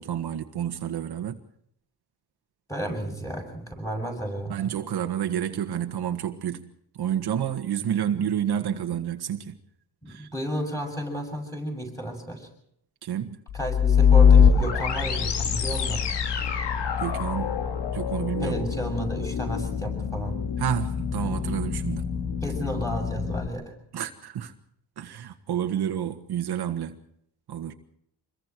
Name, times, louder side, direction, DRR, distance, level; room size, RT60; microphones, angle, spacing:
voice 1, 0.0-1.4 4.5-6.7 7.0-9.6 10.1-10.3 13.0-13.4 17.0-17.6 17.9-18.7 20.6-22.1 23.9-24.5 25.0-27.0 27.5-27.7, right 9 dB, 65° right, 1.7 m, -29 dB
voice 2, 2.7-4.6 10.0-12.5 13.5-16.0 18.4-20.4 22.4-23.7, right 1 dB, 5° left, 7.4 m, -32 dB
sound 1, 13.5-23.5, left 7 dB, 80° left, 2.4 m, -23 dB
27.0 x 22.0 x 4.7 m
cardioid pair, 140°, 41 cm